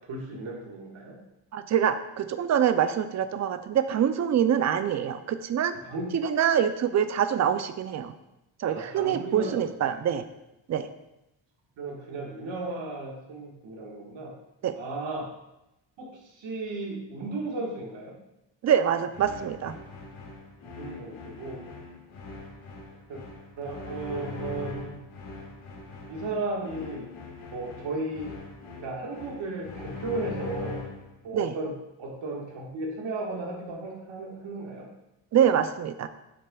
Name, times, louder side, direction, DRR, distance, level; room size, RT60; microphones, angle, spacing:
voice 1, 0.1-1.1 5.8-6.1 8.7-10.0 11.8-14.3 14.7-15.3 16.0-18.1 20.6-21.6 23.1-23.2 23.6-25.0 26.1-27.1 27.5-28.3 28.8-30.8 31.2-31.7 32.0-34.9, right 2 dB, 65° right, -1 dB, 1.6 m, -35 dB
voice 2, 1.5-5.7 6.1-8.1 8.6-10.3 10.7-10.9 14.6-14.7 18.6-19.7 31.3-31.5 35.3-36.1, right 9 dB, 40° right, 11 dB, 0.4 m, -25 dB
sound 1, 19.1-31.1, left 3 dB, 80° left, 1.7 m, -41 dB
7.7 x 6.6 x 2.3 m, 0.91 s
cardioid pair, 140°, 48 cm